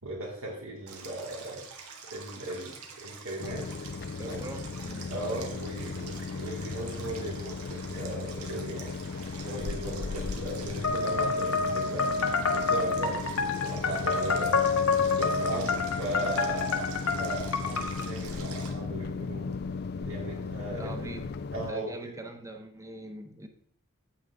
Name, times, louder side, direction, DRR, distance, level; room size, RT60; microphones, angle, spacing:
voice 1, 0.0-3.7 4.3-4.4 5.1-14.6 15.1-16.9 17.2-19.6 20.0-21.1 21.5-22.1, right 1 dB, 65° right, -6 dB, 2.4 m, -38 dB
Stream, 0.9-18.7, right 5 dB, 85° right, 1.6 m, -46 dB
sound 1, 3.4-21.7, left 4 dB, 45° left, 0.4 m, -36 dB
voice 2, 4.2-5.1 16.2-16.3 20.6-21.3 21.7-23.5, right 2 dB, 15° right, 6 dB, 0.9 m, -42 dB
sound 2, 10.8-18.1, left 4 dB, 65° left, 1.1 m, -28 dB
8.8 x 8.0 x 3.5 m, 0.63 s
head